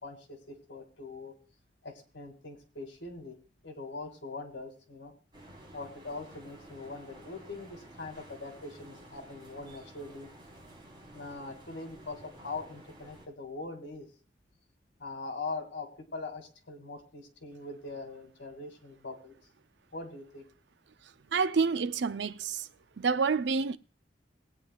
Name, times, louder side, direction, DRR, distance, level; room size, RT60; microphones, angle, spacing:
voice 1, 0.0-1.3 1.8-3.4 3.6-5.2 5.7-10.3 11.1-14.1 15.0-19.3 19.9-20.4, left 3 dB, 85° left, 2.2 m, -42 dB
sound 1, 5.3-13.3, right 1 dB, 25° right, 4.3 m, -52 dB
voice 2, 21.3-22.7 23.0-23.8, right 5 dB, 70° right, 0.5 m, -28 dB
20.0 x 9.0 x 2.3 m
head